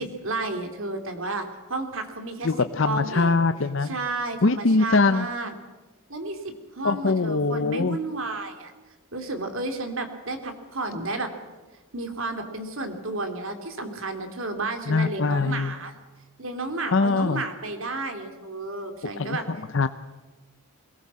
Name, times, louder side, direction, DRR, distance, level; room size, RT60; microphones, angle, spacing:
voice 1, 0.0-2.5 2.8-3.4 3.8-5.5 6.1-8.7 9.1-11.3 11.9-15.9 16.4-19.5, right 2 dB, 65° right, 6 dB, 2.9 m, -32 dB
voice 2, 2.4-3.9 4.4-5.3 6.8-8.0 14.9-15.7 16.9-17.4 19.2-19.9, left 3 dB, 55° left, 11 dB, 0.7 m, -22 dB
22.0 x 19.0 x 7.5 m, 1.3 s
head